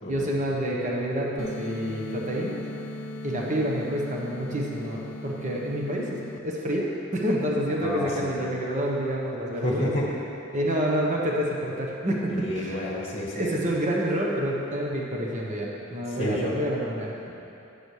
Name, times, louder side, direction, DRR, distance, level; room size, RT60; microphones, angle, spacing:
voice 1, 0.1-2.6 3.2-9.9 10.5-12.9 13.3-17.1, equal, 35° right, -2 dB, 1.0 m, -28 dB
sound 1, 1.4-6.4, left 1 dB, 65° left, 0.5 m, -38 dB
voice 2, 7.8-8.3 9.6-10.1 12.4-13.5 16.2-16.5 17.3-17.4, left 1 dB, 30° left, -2 dB, 1.3 m, -29 dB
12.0 x 9.4 x 3.3 m, 2.8 s
head